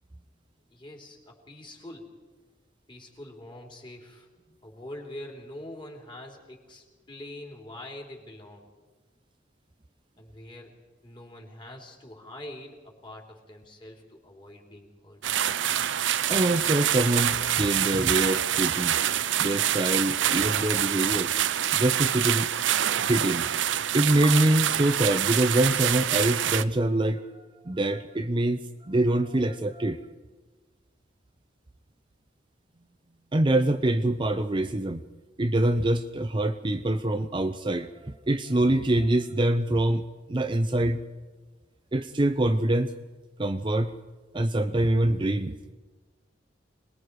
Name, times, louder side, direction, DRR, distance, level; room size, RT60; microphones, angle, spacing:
voice 1, 0.7-2.2 2.9-4.3 4.6-8.7 10.2-10.8 11.0-15.2, left 1 dB, 25° left, 1 dB, 3.5 m, -44 dB
sound 1, 15.2-26.6, right 10 dB, 75° right, 0.6 m, -26 dB
voice 2, 16.3-19.0 19.4-21.3 21.7-22.5 23.1-23.5 23.9-30.0 33.3-35.0 35.4-40.0 40.3-41.0 41.9-42.9 43.4-43.9 44.3-45.6, right 1 dB, 25° right, 8 dB, 0.7 m, -25 dB
26.5 x 20.5 x 4.8 m, 1.3 s
head